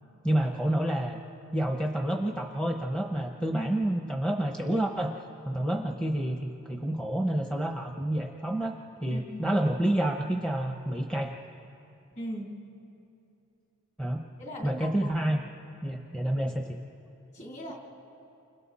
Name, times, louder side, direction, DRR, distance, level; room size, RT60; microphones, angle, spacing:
voice 1, 0.2-1.2 1.5-5.1 5.4-8.7 9.0-11.3 14.0-14.2 14.6-15.4 15.8-16.8, right 1 dB, 5° left, 2 dB, 0.9 m, -29 dB
voice 2, 9.1-9.5 12.2-12.6 14.4-14.9 17.3-17.7, equal, 35° left, -1 dB, 3.6 m, -38 dB
29.5 x 27.0 x 4.2 m, 2.7 s
head